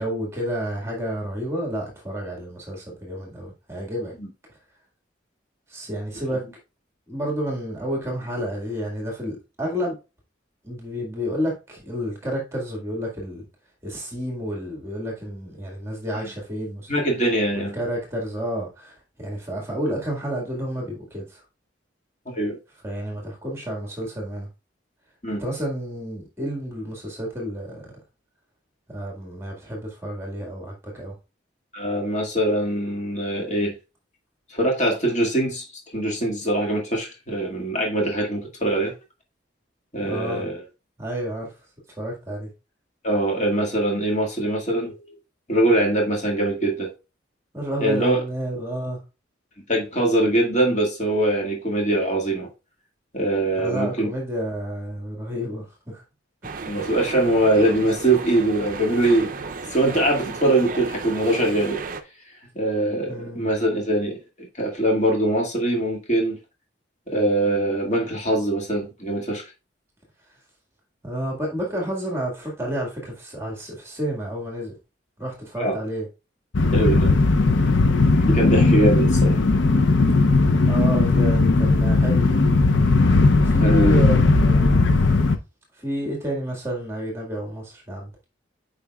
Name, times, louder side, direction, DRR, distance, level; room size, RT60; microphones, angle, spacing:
voice 1, 0.0-4.1 5.7-6.5 7.1-10.0 10.6-13.5 13.8-16.9 17.5-21.4 22.8-24.5 25.4-27.9 28.9-31.2 40.0-40.4 41.0-41.5 42.0-42.5 47.5-49.0 53.6-56.0 56.4-56.5 63.1-63.5 71.0-74.7 75.2-76.1 80.7-82.3 83.4-84.9 85.7-88.1, equal, 15° right, 1.8 m, -30 dB
voice 2, 16.9-17.7 22.3-22.6 25.2-25.4 31.7-33.8 34.5-35.7 35.9-38.9 39.9-40.6 43.0-44.9 45.5-46.9 47.8-48.2 49.7-52.5 53.1-54.1 56.6-59.3 59.7-61.8 62.5-64.2 64.6-66.4 67.1-69.5 75.6-75.7 76.7-77.1 78.2-79.3 83.6-84.0, right 1 dB, 35° left, 2.0 m, -22 dB
sound 1, 56.4-62.0, right 4 dB, 45° right, 0.5 m, -34 dB
sound 2, 76.5-85.4, left 3 dB, 75° left, 0.6 m, -17 dB
8.6 x 5.1 x 2.3 m
head